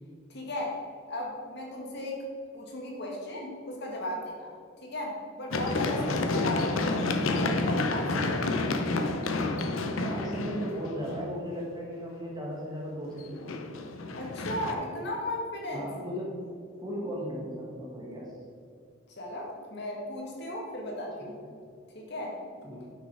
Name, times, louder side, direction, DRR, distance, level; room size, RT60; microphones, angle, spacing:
voice 1, 0.3-0.8 1.1-2.2 2.5-4.5 4.8-8.4 14.1-15.9 19.2-21.4 21.9-22.4, left 1 dB, 50° left, -1 dB, 1.8 m, -36 dB
Run, 5.5-11.4 13.2-14.7, left 2 dB, 70° left, 0.8 m, -29 dB
voice 2, 10.0-13.5 15.7-16.4 16.8-18.3 22.6-22.8, equal, 20° right, -4 dB, 2.0 m, -36 dB
9.3 x 6.3 x 4.9 m, 2.4 s
head